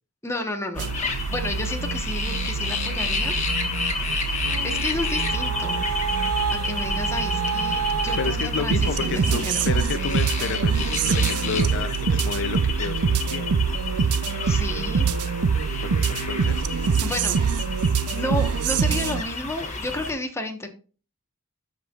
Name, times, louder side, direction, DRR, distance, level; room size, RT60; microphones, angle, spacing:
voice 1, 0.2-3.3 4.6-5.9 6.5-9.6 14.5-15.1 17.0-17.4 18.1-20.7, left 1 dB, 10° left, 4 dB, 1.2 m, -31 dB
sound 1, 0.8-20.1, left 4 dB, 35° left, 1.5 m, -30 dB
sound 2, 0.8-19.2, right 6 dB, 80° right, 0.5 m, -25 dB
voice 2, 8.2-13.5 15.8-16.7, left 5 dB, 55° left, 10 dB, 0.6 m, -31 dB
13.0 x 5.4 x 2.4 m, 0.36 s
head